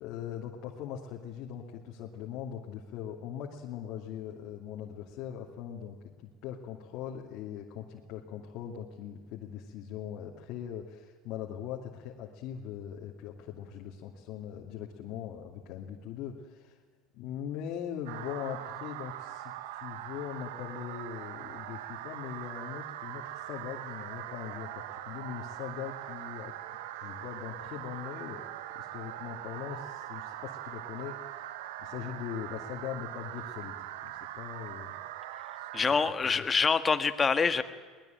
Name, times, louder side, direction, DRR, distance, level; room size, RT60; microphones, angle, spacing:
voice 1, 0.0-16.8 17.1-26.5 27.0-28.4 28.7-31.4 31.8-33.8 34.0-34.9 35.6-35.7 36.2-36.4, left 9 dB, 65° left, 0 dB, 2.6 m, -41 dB
sound 1, 18.1-36.1, right 13 dB, 80° right, 1.3 m, -42 dB
voice 2, 35.7-37.6, left 5 dB, 25° left, 10 dB, 1.7 m, -26 dB
22.0 x 19.5 x 9.2 m, 1.5 s
supercardioid pair, 90°, 0 cm